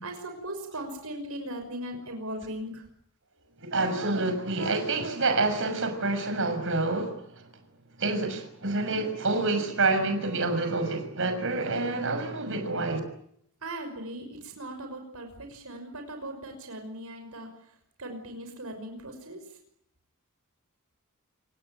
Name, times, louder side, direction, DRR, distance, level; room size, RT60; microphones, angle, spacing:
voice 1, 0.0-2.8 13.6-17.7 18.0-19.6, right 1 dB, 80° right, 5.8 m, -39 dB
voice 2, 3.6-7.5 8.0-13.0, right 3 dB, 60° right, 6.2 m, -28 dB
28.5 x 18.5 x 9.0 m
head